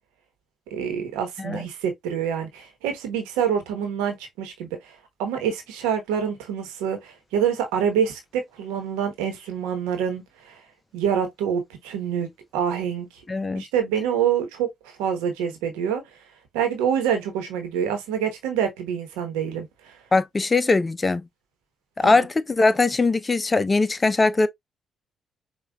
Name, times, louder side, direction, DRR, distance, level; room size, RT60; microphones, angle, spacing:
voice 1, 0.7-10.6 10.9-13.1 13.6-16.0 16.5-20.0 22.0-22.1, right 8 dB, 80° right, 1.0 m, -26 dB
voice 2, 13.3-13.6 20.1-21.3 22.0-24.5, left 3 dB, 30° left, 0.5 m, -21 dB
5.2 x 2.3 x 2.2 m
hypercardioid pair, 45°, 0 cm